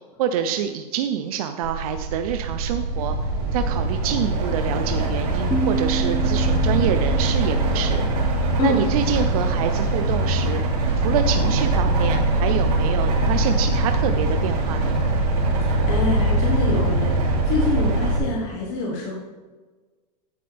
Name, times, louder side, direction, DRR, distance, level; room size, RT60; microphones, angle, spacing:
voice 1, 0.2-3.2 3.5-8.0 8.6-10.6 11.0-15.0, right 9 dB, 60° right, 7 dB, 0.6 m, -26 dB
sound 1, 1.6-18.2, right 2 dB, 80° right, 2.7 m, -22 dB
sound 2, 5.5-9.4, right 4 dB, ahead, 0.5 m, -31 dB
voice 2, 15.6-19.2, left 3 dB, 40° left, -3 dB, 1.5 m, -26 dB
9.1 x 7.7 x 3.4 m, 1.3 s
supercardioid pair, 165°, 21 cm